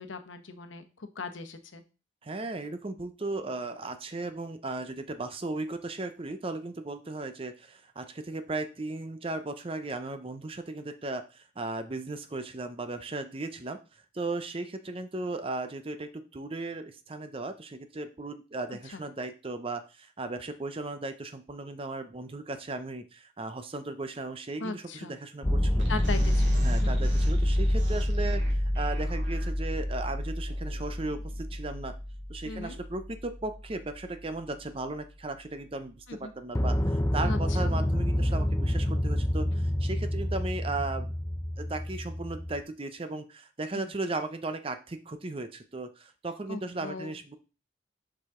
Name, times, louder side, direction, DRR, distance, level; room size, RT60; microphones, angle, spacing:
voice 1, 0.0-1.8 18.9-19.0 24.6-25.1 25.9-26.9 32.4-32.8 36.1-36.3 37.2-37.7 43.7-43.9 46.5-47.1, left 3 dB, 80° left, 8 dB, 1.0 m, -38 dB
voice 2, 2.2-13.8 14.1-25.9 26.6-31.9 32.3-41.1 41.6-47.4, right 2 dB, 30° right, 9 dB, 0.6 m, -36 dB
sound 1, 25.4-33.3 36.6-42.6, left 1 dB, 15° left, 0.5 m, -28 dB
sound 2, 25.8-32.2, right 1 dB, 65° right, 2.9 m, -42 dB
7.1 x 4.9 x 3.7 m, 0.32 s
head